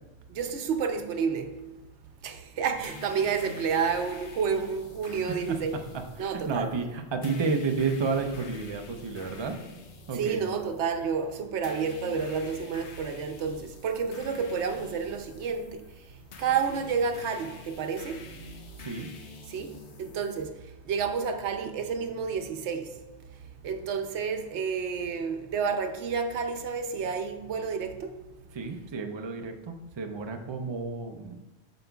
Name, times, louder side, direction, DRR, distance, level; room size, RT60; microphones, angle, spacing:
voice 1, 0.3-1.5 2.2-5.8 6.2-6.7 10.1-15.8 16.4-18.2 19.5-20.5 20.9-22.9 23.6-28.2, right 6 dB, 85° right, 1.0 m, -30 dB
sound 1, 2.8-20.4, left 3 dB, 80° left, 1.1 m, -47 dB
voice 2, 5.9-9.6 10.1-10.4 18.8-19.1 28.5-31.4, right 4 dB, 35° right, 0.5 m, -31 dB
7.8 x 6.2 x 2.3 m
omnidirectional pair, 1.1 m